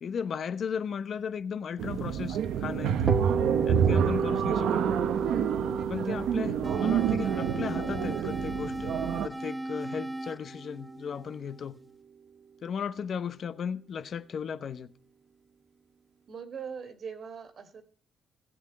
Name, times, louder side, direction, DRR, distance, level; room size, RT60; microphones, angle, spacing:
voice 1, 0.0-3.2 3.7-4.8 5.9-11.8 12.6-14.9, left 7 dB, 55° left, 0.8 m, -36 dB
sound 1, 1.8-9.3, right 8 dB, 85° right, 1.0 m, -28 dB
sound 2, 3.1-10.8, right 5 dB, 40° right, 1.0 m, -33 dB
voice 2, 5.8-6.2 16.3-17.8, right 6 dB, 55° right, 2.4 m, -42 dB
sound 3, 6.6-11.7, right 1 dB, 5° right, 0.7 m, -37 dB
16.0 x 7.0 x 8.5 m
cardioid pair, 90°, 0 cm